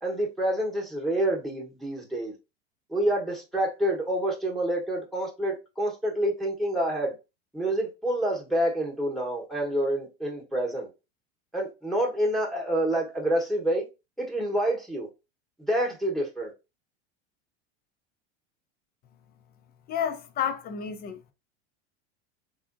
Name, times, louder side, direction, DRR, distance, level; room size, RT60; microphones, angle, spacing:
voice 1, 0.0-2.3 2.9-7.1 7.5-10.9 11.5-13.9 14.2-15.1 15.6-16.5, right 1 dB, ahead, 0.9 m, -27 dB
voice 2, 19.9-21.3, left 8 dB, 30° left, 0.4 m, -31 dB
3.5 x 2.5 x 2.5 m
hypercardioid pair, 100°, 34 cm